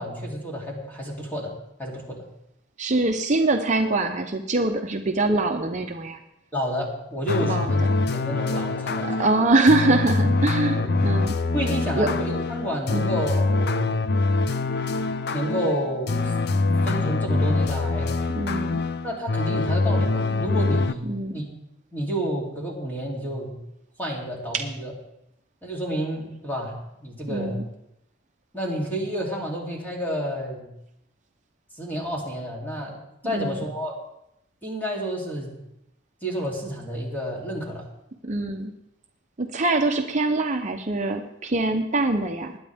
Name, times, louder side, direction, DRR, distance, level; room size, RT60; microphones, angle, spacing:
voice 1, 0.0-1.5 1.8-2.2 6.5-7.8 8.1-9.3 10.8-11.0 11.5-13.9 15.3-16.3 16.8-18.1 19.0-21.1 21.3-21.4 21.9-23.5 24.0-24.9 25.6-26.7 27.0-27.6 28.5-30.7 31.8-33.0 33.2-33.9 34.6-35.6 36.2-37.8, equal, 10° left, -3 dB, 3.1 m, -30 dB
voice 2, 2.8-6.2 7.4-7.7 9.0-11.4 12.0-12.1 12.9-13.1 18.3-18.8 21.1-21.3 24.5-24.6 27.3-27.6 33.3-33.6 38.2-38.7 39.4-42.6, right 2 dB, 40° right, 4 dB, 0.7 m, -23 dB
sound 1, 7.3-20.9, left 3 dB, 55° left, 0.6 m, -24 dB
20.5 x 9.5 x 3.5 m, 0.82 s
head